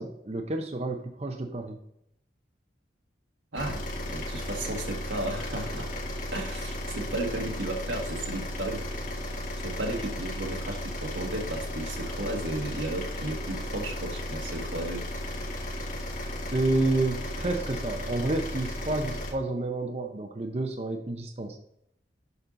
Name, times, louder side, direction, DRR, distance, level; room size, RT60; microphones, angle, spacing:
voice 1, 0.0-1.8 16.5-21.6, right 2 dB, 35° right, 4 dB, 0.6 m, -30 dB
voice 2, 3.5-5.9 6.3-8.9 9.3-15.1, right 1 dB, 90° right, 2 dB, 1.5 m, -34 dB
sound 1, 3.6-19.3, left 1 dB, 45° left, 1.3 m, -35 dB
6.8 x 5.5 x 3.8 m, 0.75 s
head